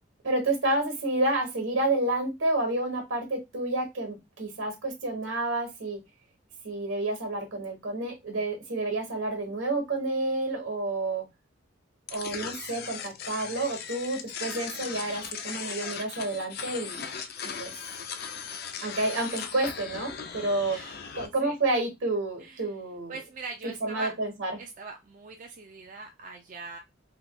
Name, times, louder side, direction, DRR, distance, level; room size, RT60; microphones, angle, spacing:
voice 1, 0.2-6.0 6.6-11.3 12.1-17.0 17.4-17.7 18.8-20.8 21.1-23.2 23.8-24.6, right 2 dB, 85° right, 3 dB, 1.1 m, -29 dB
sound 1, 12.1-21.3, left 7 dB, 50° left, 0.4 m, -38 dB
voice 2, 20.4-21.1 21.4-21.5 22.4-22.7 23.1-24.2 24.6-26.8, right 3 dB, 40° right, 3 dB, 0.4 m, -41 dB
3.0 x 2.9 x 2.2 m, 0.20 s
head